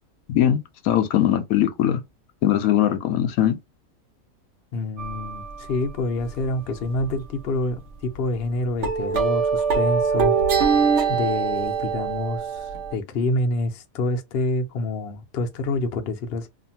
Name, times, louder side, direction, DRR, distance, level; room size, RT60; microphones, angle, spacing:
voice 1, 0.3-2.0 2.4-3.6, left 11 dB, 85° left, 1.0 m, -21 dB
voice 2, 4.7-10.4 11.1-16.5, left 2 dB, 55° left, 0.7 m, -27 dB
sound 1, 5.0-5.9 6.2-6.5 6.8-7.1 7.4-7.5 8.1-8.2 8.8-12.9, right 6 dB, 65° right, 0.9 m, -23 dB
2.7 x 2.5 x 2.7 m
omnidirectional pair, 1.4 m